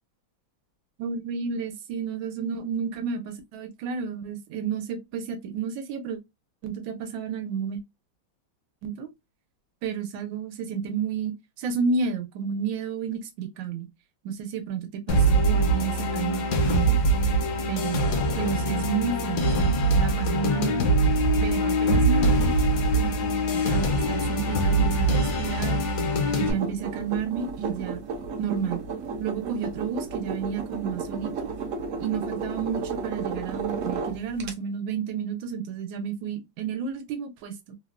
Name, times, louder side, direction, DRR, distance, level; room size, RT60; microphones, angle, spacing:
voice 1, 1.0-6.2 6.6-7.8 8.8-9.1 9.8-13.9 14.2-17.0 17.7-20.9 21.4-22.5 22.9-25.8 26.3-28.0 28.4-28.8 29.2-31.5 32.0-37.7, right 6 dB, 85° right, 1.5 m, -31 dB
sound 1, 15.1-26.5, right 1 dB, 65° left, 1.2 m, -23 dB
sound 2, 26.5-34.5, right 4 dB, 65° right, 0.9 m, -33 dB
3.4 x 2.1 x 2.3 m
omnidirectional pair, 2.1 m